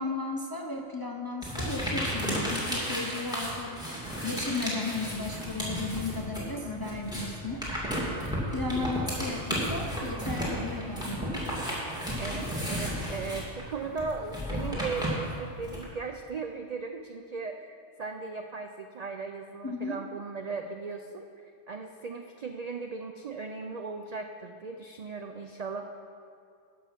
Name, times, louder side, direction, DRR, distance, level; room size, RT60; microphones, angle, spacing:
voice 1, 0.0-3.8 4.2-7.6 8.5-11.4 19.6-20.0, left 3 dB, 30° left, 2 dB, 0.4 m, -35 dB
sound 1, 1.4-6.5 6.8-15.8, equal, 5° right, 2.1 m, -33 dB
voice 2, 6.6-7.0 12.2-25.9, right 4 dB, 65° right, 5 dB, 0.4 m, -37 dB
13.0 x 5.6 x 5.8 m, 2.4 s
omnidirectional pair, 1.3 m